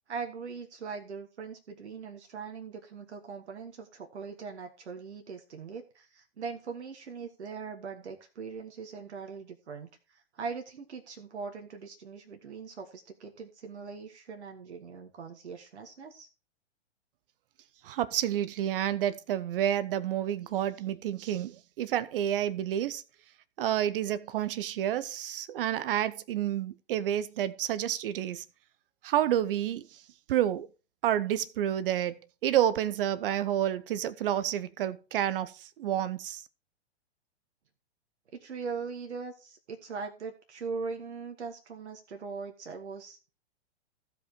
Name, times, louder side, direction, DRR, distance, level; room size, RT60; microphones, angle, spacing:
voice 1, 0.1-16.3 38.3-43.2, right 5 dB, 80° right, 1.5 m, -41 dB
voice 2, 17.9-23.0 23.6-28.4 29.0-29.8 30.3-30.7 31.0-35.5 35.8-36.4, right 11 dB, 55° right, 0.8 m, -29 dB
15.0 x 5.3 x 4.5 m
hypercardioid pair, 115°, 34 cm